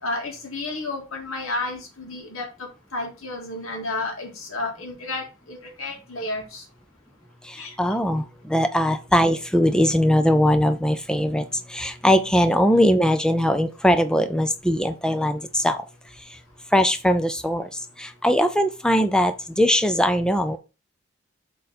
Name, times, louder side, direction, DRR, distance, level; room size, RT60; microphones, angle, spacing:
voice 1, 0.0-6.7 7.6-7.7, left 2 dB, 70° left, 2 dB, 2.2 m, -32 dB
voice 2, 7.5-15.8 16.7-17.7 18.0-20.6, equal, 5° left, 9 dB, 0.5 m, -21 dB
6.8 x 3.8 x 4.2 m, 0.30 s
head